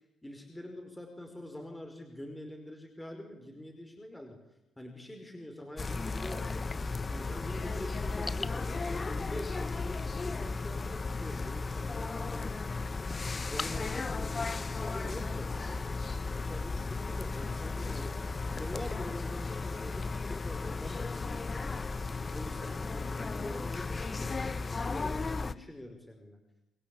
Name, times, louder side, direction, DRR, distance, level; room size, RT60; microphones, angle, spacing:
voice 1, 0.2-4.4 4.8-6.7 7.1-12.6 13.3-18.1 18.5-21.8 22.1-26.4, left 1 dB, 10° left, 3 dB, 5.2 m, -45 dB
sound 1, 5.8-25.5, left 3 dB, 30° left, 1.1 m, -35 dB
27.0 x 21.5 x 8.6 m, 0.93 s
cardioid pair, 90°, 0 cm